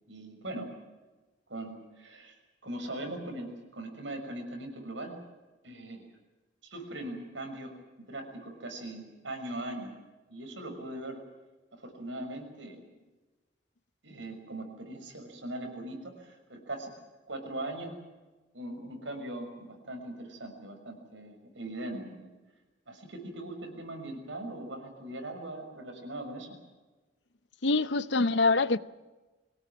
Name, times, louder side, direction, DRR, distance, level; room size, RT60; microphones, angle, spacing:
voice 1, 0.1-0.7 1.5-2.3 2.6-5.2 5.6-6.1 6.6-9.9 10.3-11.2 11.8-12.8 14.0-16.9 17.3-18.0 18.5-22.3 22.9-26.6, right 1 dB, 90° right, 6.4 m, -40 dB
voice 2, 27.6-28.8, left 3 dB, 70° left, 0.8 m, -25 dB
24.5 x 18.0 x 9.0 m
head